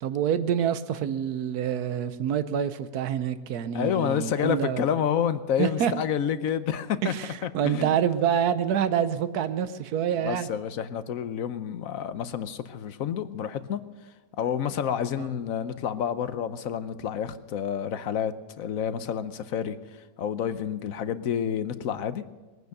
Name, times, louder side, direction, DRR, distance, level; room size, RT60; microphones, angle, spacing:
voice 1, 0.0-4.8 5.6-5.9 7.0-10.5 15.2-15.3, right 9 dB, 85° right, 13 dB, 1.3 m, -27 dB
voice 2, 3.7-7.1 7.4-8.0 10.2-13.8 14.4-19.8 20.2-22.2, left 8 dB, 70° left, 13 dB, 1.1 m, -29 dB
20.5 x 9.4 x 6.6 m, 1.2 s
omnidirectional pair, 1.6 m